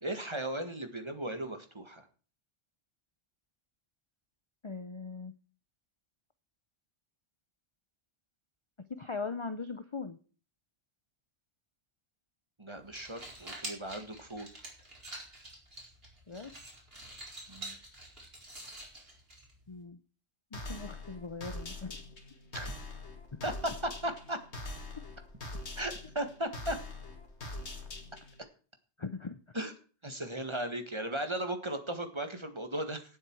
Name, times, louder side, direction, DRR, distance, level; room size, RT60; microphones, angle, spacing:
voice 1, 0.0-2.1 12.6-14.5 17.5-17.8 22.5-22.7 23.4-24.4 25.8-26.8 29.5-29.7 30.0-33.0, right 1 dB, 25° right, 7 dB, 1.7 m, -36 dB
voice 2, 4.6-5.3 8.9-10.2 16.3-16.5 19.7-20.0 20.5-22.0 29.0-29.4, left 4 dB, 30° left, 10 dB, 0.7 m, -40 dB
sound 1, 12.8-19.8, right 1 dB, 55° right, 4.8 m, -47 dB
sound 2, 20.5-28.4, left 2 dB, 70° left, 2.4 m, -43 dB
17.0 x 7.9 x 4.6 m, 0.39 s
omnidirectional pair, 1.2 m